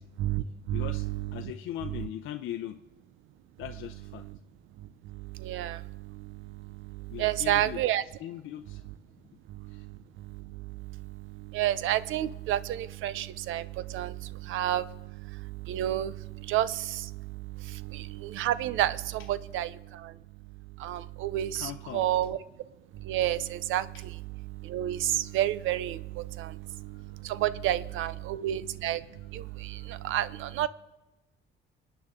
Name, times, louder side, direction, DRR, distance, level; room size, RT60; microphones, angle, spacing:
voice 1, 0.2-1.5 1.8-2.1 4.2-4.4 4.8-8.0 8.7-8.9 9.5-20.2 20.5-22.7 22.9-30.7, right 13 dB, 90° right, 16 dB, 0.6 m, -31 dB
voice 2, 0.7-2.8 3.6-4.3 7.1-7.8 8.2-8.8 9.7-9.8 21.5-22.1 26.9-27.3 29.8-29.9, left 12 dB, 85° left, 7 dB, 0.6 m, -40 dB
26.0 x 9.3 x 3.7 m, 1.1 s
cardioid pair, 90°, 20 cm